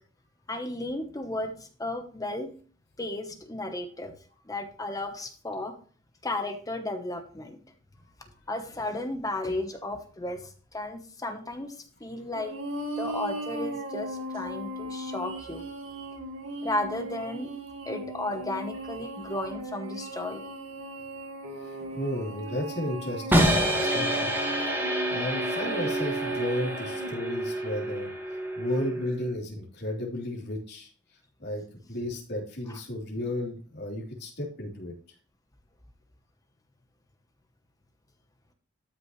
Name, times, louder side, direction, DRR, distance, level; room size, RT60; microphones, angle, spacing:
voice 1, 0.5-2.5 3.0-4.1 4.5-5.7 6.2-7.6 8.5-12.5 13.0-15.6 16.6-17.5 17.8-20.4 32.7-32.8, left 1 dB, 20° left, 6 dB, 1.0 m, -34 dB
sound 1, 12.3-27.1, right 2 dB, 80° right, 2.1 m, -37 dB
voice 2, 21.6-24.3 24.7-28.1 28.5-30.9 31.4-31.6 31.9-34.9, left 1 dB, 55° left, -2 dB, 3.4 m, -33 dB
sound 2, 23.3-29.3, equal, 10° right, 1.9 m, -28 dB
12.5 x 6.1 x 3.1 m, 0.42 s
head